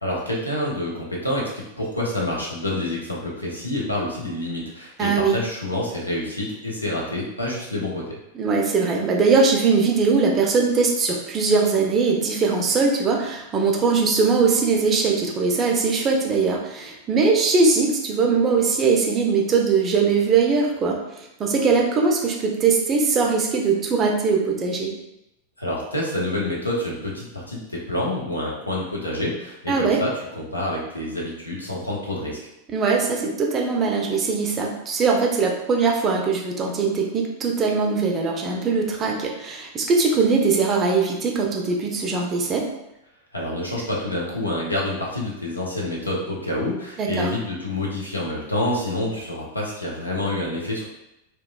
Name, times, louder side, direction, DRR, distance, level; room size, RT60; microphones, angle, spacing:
voice 1, 0.0-8.2 25.6-32.4 43.3-50.8, left 1 dB, 85° left, -3 dB, 0.6 m, -27 dB
voice 2, 5.0-5.4 8.3-24.9 29.7-30.0 32.7-42.6 47.0-47.3, right 4 dB, 25° right, 0 dB, 0.5 m, -21 dB
2.9 x 2.2 x 2.3 m, 0.88 s
figure-of-eight pair, 90°, 0 cm